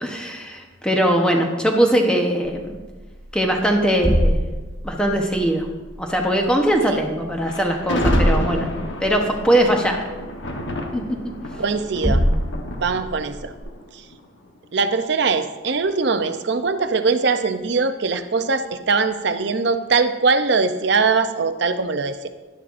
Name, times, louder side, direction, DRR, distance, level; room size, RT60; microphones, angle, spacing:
voice 1, 0.0-2.6 3.3-4.4 4.8-5.7 6.0-8.7 9.0-10.0 10.9-11.0, right 1 dB, 5° left, 1 dB, 0.9 m, -20 dB
sound 1, 2.5-13.6, equal, 10° right, 1.9 m, -26 dB
Thunder, 7.4-14.6, left 1 dB, 65° left, 1.1 m, -31 dB
voice 2, 11.6-12.2 12.8-13.5 14.7-22.3, right 4 dB, 55° right, 9 dB, 0.6 m, -21 dB
11.5 x 11.0 x 2.6 m, 1.3 s
head